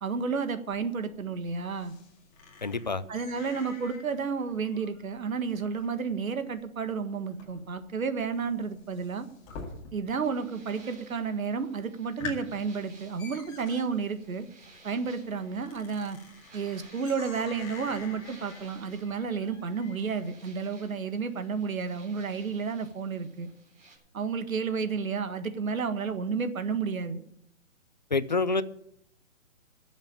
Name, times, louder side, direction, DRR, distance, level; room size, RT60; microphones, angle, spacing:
voice 1, 0.0-1.9 3.1-9.3 9.9-14.5 14.8-16.2 16.5-23.5 24.1-27.2, right 5 dB, 80° right, 10 dB, 1.7 m, -31 dB
sound 1, 0.7-10.3 10.5-11.1 11.5-11.6 12.0-20.3, left 4 dB, 15° left, 2.1 m, -47 dB
voice 2, 2.6-3.0 28.1-28.6, left 3 dB, 35° left, 16 dB, 0.4 m, -27 dB
sound 2, 10.1-24.0, right 3 dB, 35° right, 3.8 m, -57 dB
12.5 x 7.3 x 8.9 m, 0.73 s
hypercardioid pair, 160°, 41 cm